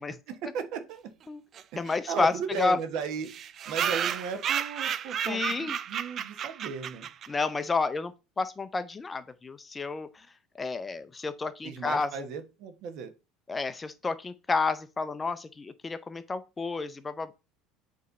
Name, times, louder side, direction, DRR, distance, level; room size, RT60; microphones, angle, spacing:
voice 1, 0.3-1.1 1.7-3.3 3.7-7.1 11.6-13.1, right 5 dB, 65° right, 1.1 m, -36 dB
sound 1, 1.5-1.6 1.9-2.0 2.2-2.3 2.5-2.6 3.2-7.5, right 9 dB, 40° right, 0.4 m, -32 dB
voice 2, 1.8-2.8 5.2-5.8 7.3-10.3 10.6-12.1 13.5-17.3, left 4 dB, 20° left, 0.5 m, -30 dB
8.2 x 3.1 x 4.0 m
supercardioid pair, 120°, 0 cm